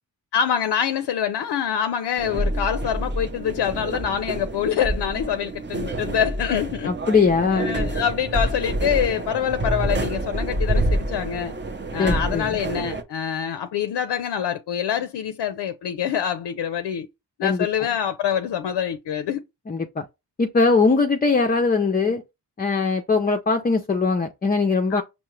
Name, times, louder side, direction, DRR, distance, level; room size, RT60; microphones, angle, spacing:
voice 1, 0.3-6.9 7.5-11.5 11.9-17.1 17.4-19.4 24.9-25.0, left 9 dB, 75° left, 0.5 m, -25 dB
sound 1, 2.2-13.0, right 1 dB, 25° right, 0.6 m, -27 dB
voice 2, 6.8-7.8 12.0-12.5 17.4-17.7 19.7-20.0 20.4-22.2 22.6-25.0, left 4 dB, 25° left, 0.4 m, -21 dB
5.6 x 2.1 x 3.1 m
cardioid pair, 75°, 41 cm